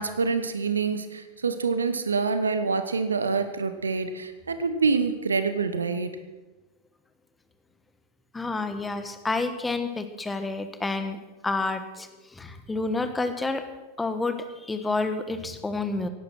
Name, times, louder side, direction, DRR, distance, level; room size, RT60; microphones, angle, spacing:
voice 1, 0.0-6.1, right 4 dB, 75° right, 10 dB, 1.2 m, -26 dB
voice 2, 8.3-13.6 14.0-16.1, left 3 dB, 10° left, 9 dB, 1.4 m, -29 dB
16.5 x 11.5 x 6.2 m, 1.1 s
figure-of-eight pair, 90°, 0 cm